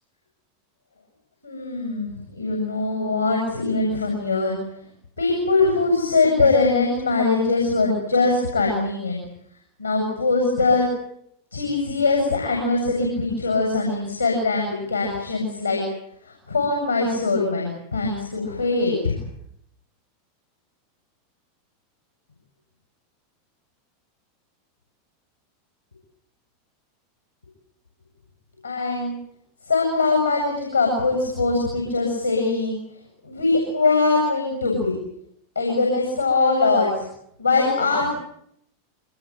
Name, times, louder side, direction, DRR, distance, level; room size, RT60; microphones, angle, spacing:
voice 1, 1.4-4.6 5.2-9.2 9.8-10.9 11.5-15.8 16.5-19.2 28.6-29.1 29.6-32.8 33.2-34.9 35.6-36.9 37.4-38.1, left 3 dB, 85° left, 0 dB, 7.7 m, -22 dB
25.0 x 21.0 x 9.1 m, 0.74 s
figure-of-eight pair, 85°, 0 cm